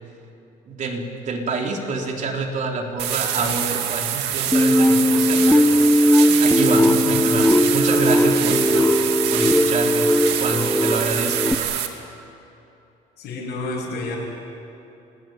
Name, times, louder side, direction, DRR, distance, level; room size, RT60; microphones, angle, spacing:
voice 1, 0.7-8.9 9.3-10.1 10.4-11.6, right 3 dB, 45° right, 2 dB, 3.8 m, -27 dB
sound 1, 3.0-11.9, right 11 dB, 90° right, 2.1 m, -25 dB
sound 2, 4.5-11.5, left 1 dB, 5° left, 0.7 m, -18 dB
voice 2, 7.0-7.4 13.2-14.2, left 3 dB, 70° left, -4 dB, 6.7 m, -30 dB
27.0 x 19.0 x 9.4 m, 2.9 s
cardioid pair, 110°, 17 cm